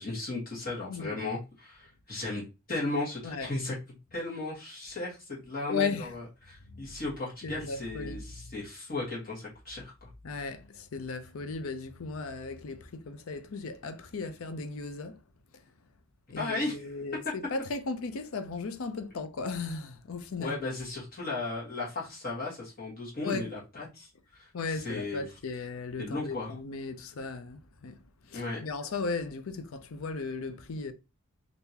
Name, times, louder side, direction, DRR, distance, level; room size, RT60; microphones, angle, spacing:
voice 1, 0.0-2.4 2.7-3.8 4.1-10.1 16.3-16.9 20.4-25.2 26.0-26.5 28.3-28.7, left 2 dB, 40° left, 1.3 m, -36 dB
voice 2, 5.7-6.1 6.7-6.9 7.4-8.2 10.2-15.2 16.3-20.6 23.2-23.5 24.5-30.9, left 4 dB, 75° left, 0.5 m, -36 dB
3.6 x 2.6 x 2.8 m
head